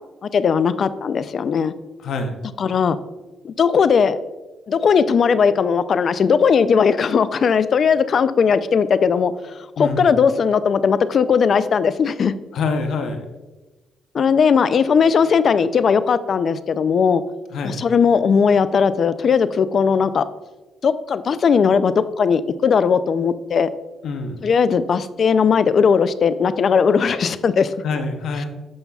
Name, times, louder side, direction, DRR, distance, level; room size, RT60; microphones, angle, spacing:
voice 1, 0.2-1.7 2.6-3.0 3.4-4.2 4.7-12.3 14.1-17.2 17.6-20.2 20.8-23.7 24.4-27.7, left 6 dB, 50° left, 14 dB, 0.4 m, -18 dB
voice 2, 2.0-2.4 9.8-10.1 12.5-13.2 17.5-17.8 24.0-24.4 27.8-28.4, left 3 dB, 70° left, 5 dB, 0.8 m, -25 dB
11.5 x 5.4 x 2.3 m, 1.1 s
cardioid pair, 90°, 0 cm